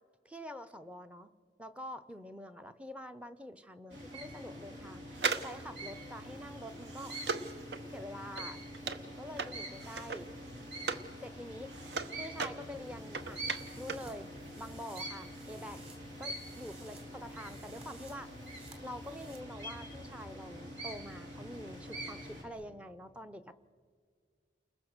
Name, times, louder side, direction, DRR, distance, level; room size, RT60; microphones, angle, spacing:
voice 1, 0.2-1.3 1.6-7.2 7.9-8.6 9.2-10.3 11.2-13.5 13.8-15.8 16.2-18.3 18.8-23.6, equal, 5° right, 10 dB, 0.6 m, -46 dB
sound 1, 3.9-22.4, right 1 dB, 80° right, 4.4 m, -45 dB
sound 2, 5.1-11.1 11.5-14.1 14.4-14.5, right 4 dB, 65° right, 1.1 m, -39 dB
sound 3, 12.6-19.4, right 3 dB, 35° right, 3.2 m, -58 dB
29.5 x 21.0 x 6.6 m, 2.1 s
head